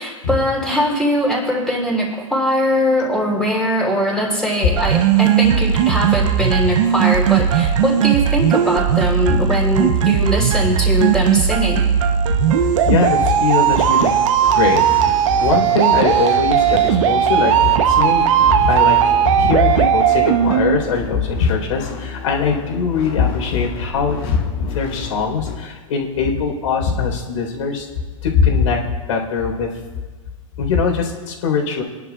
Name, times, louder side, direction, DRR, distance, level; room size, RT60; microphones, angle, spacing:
voice 1, 0.0-11.8, equal, 5° left, -4 dB, 3.5 m, -20 dB
sound 1, 4.8-20.8, right 9 dB, 65° right, 0.9 m, -16 dB
voice 2, 12.6-14.1 14.5-19.0 19.2-27.9 28.2-29.7 30.6-31.8, left 5 dB, 75° left, 0 dB, 4.1 m, -21 dB
sound 2, 13.6-25.6, left 4 dB, 45° left, 2.9 m, -32 dB
24.5 x 11.0 x 2.4 m, 1.4 s
hypercardioid pair, 135°, 17 cm